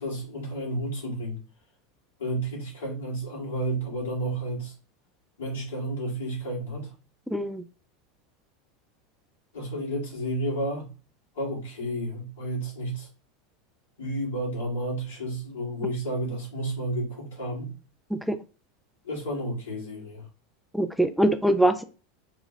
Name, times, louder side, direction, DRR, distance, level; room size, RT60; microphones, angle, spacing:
voice 1, 0.0-1.4 2.2-4.7 5.4-6.9 9.5-10.9 11.4-13.1 14.0-17.7 19.0-20.2, right 1 dB, 80° left, 1.9 m, -31 dB
voice 2, 7.3-7.6 18.1-18.4 20.7-21.8, right 1 dB, ahead, 0.3 m, -23 dB
3.7 x 2.3 x 3.1 m
hypercardioid pair, 90°, 0 cm